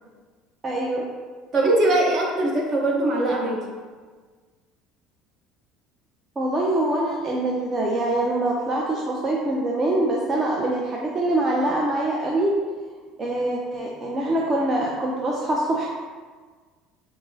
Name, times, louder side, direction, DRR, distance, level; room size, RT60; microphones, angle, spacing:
voice 1, 0.6-1.0 6.4-12.6 13.2-15.9, right 1 dB, 30° right, -3 dB, 0.5 m, -24 dB
voice 2, 1.5-3.6, right 2 dB, 50° right, -2 dB, 0.9 m, -21 dB
6.0 x 2.0 x 2.6 m, 1.5 s
supercardioid pair, 95°, 0 cm